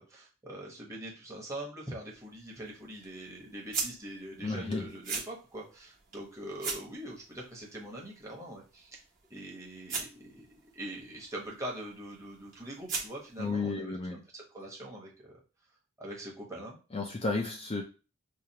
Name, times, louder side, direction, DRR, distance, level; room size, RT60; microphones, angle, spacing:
voice 1, 0.0-9.0 9.3-15.3 16.0-16.8, right 1 dB, 15° right, -3 dB, 1.0 m, -43 dB
sound 1, 1.9-13.5, right 4 dB, 40° right, 1.1 m, -43 dB
voice 2, 4.4-4.9 13.4-14.2 16.9-17.8, left 3 dB, 25° left, 2 dB, 0.4 m, -32 dB
4.7 x 2.4 x 2.8 m, 0.33 s
head